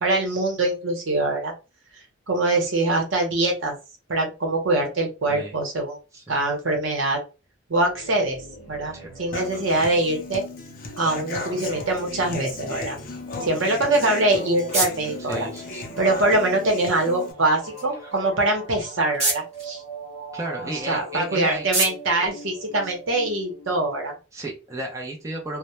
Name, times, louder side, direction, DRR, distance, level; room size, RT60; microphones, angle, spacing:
voice 1, 0.0-1.5 2.3-3.7 4.1-6.0 6.3-7.2 7.7-8.4 8.7-10.4 11.0-13.0 13.4-15.5 16.0-19.8 20.6-24.1, right 2 dB, 75° right, 2 dB, 0.8 m, -23 dB
sound 1, 7.8-24.0, right 2 dB, 10° left, 1.2 m, -42 dB
Human voice / Acoustic guitar, 9.3-17.3, left 3 dB, 45° left, 0.4 m, -35 dB
sound 2, 13.9-23.3, right 2 dB, 35° right, 0.9 m, -33 dB
voice 2, 15.3-15.8 20.3-21.7 24.3-25.6, right 1 dB, 15° right, -2 dB, 0.5 m, -33 dB
2.2 x 2.1 x 2.8 m, 0.30 s
head